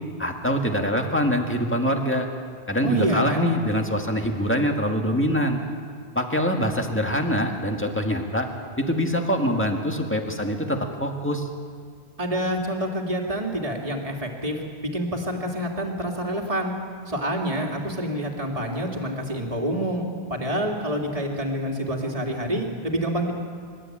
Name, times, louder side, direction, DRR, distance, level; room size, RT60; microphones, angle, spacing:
voice 1, 0.2-2.3 2.7-5.6 6.2-8.5 8.8-11.5, equal, 10° left, 2 dB, 1.8 m, -24 dB
voice 2, 2.8-3.5 12.2-16.7 17.1-23.3, equal, 35° right, 0 dB, 2.6 m, -27 dB
27.5 x 12.5 x 8.7 m, 2.1 s
omnidirectional pair, 1.1 m